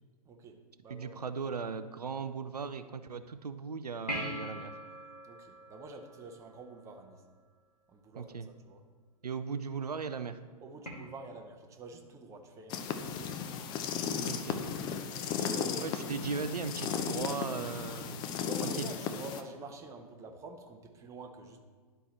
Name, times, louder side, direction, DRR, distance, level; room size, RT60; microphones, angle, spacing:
voice 1, 0.3-1.2 5.2-7.2 7.9-8.8 10.6-13.5 15.4-16.2 18.5-21.6, right 2 dB, 15° right, 4 dB, 0.7 m, -47 dB
voice 2, 0.9-4.7 8.2-8.5 9.2-10.4 14.3-14.6 15.8-18.3 18.6-18.9, right 5 dB, 85° right, 10 dB, 0.4 m, -37 dB
sound 1, 4.1-6.8 10.8-10.9, equal, 90° left, 1.9 m, -41 dB
sound 2, 12.7-19.4, left 7 dB, 25° left, 0.5 m, -35 dB
11.5 x 4.5 x 4.2 m, 1.5 s
figure-of-eight pair, 110°, 20 cm